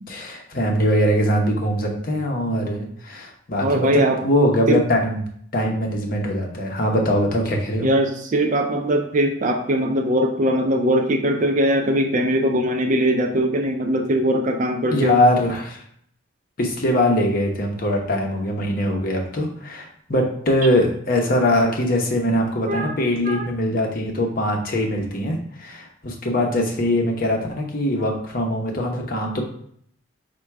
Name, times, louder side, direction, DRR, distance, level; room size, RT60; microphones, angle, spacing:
voice 1, 0.1-5.2 5.5-7.9 14.9-15.8 16.6-29.4, left 1 dB, 45° left, 1 dB, 0.8 m, -22 dB
voice 2, 3.6-4.2 4.7-4.8 7.8-15.2 22.7-23.0 23.3-23.5, right 1 dB, 40° right, 4 dB, 0.4 m, -21 dB
4.2 x 2.2 x 4.6 m, 0.64 s
head